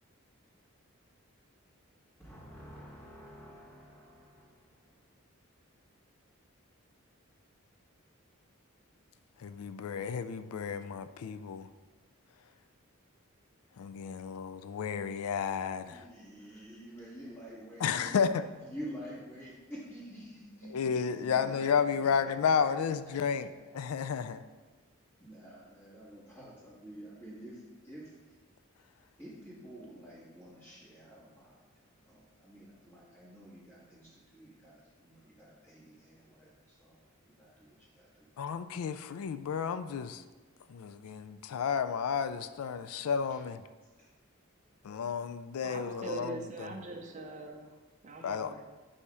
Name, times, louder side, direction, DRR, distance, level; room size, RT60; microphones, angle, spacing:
voice 1, 2.2-5.0 15.9-18.2 18.6-22.3 22.7-24.0 25.2-28.1 29.2-31.6 32.0-37.0 37.2-38.3 43.3-43.4 44.0-44.1, equal, 10° left, -8 dB, 1.9 m, -49 dB
voice 2, 9.4-11.7 13.8-16.0 17.8-18.4 20.7-24.4 38.4-40.2 40.7-43.6 44.8-46.7 48.2-48.5, left 6 dB, 90° left, 11 dB, 0.4 m, -32 dB
voice 3, 45.6-48.6, right 2 dB, 35° right, 3 dB, 0.5 m, -42 dB
8.4 x 2.8 x 4.8 m, 1.3 s
head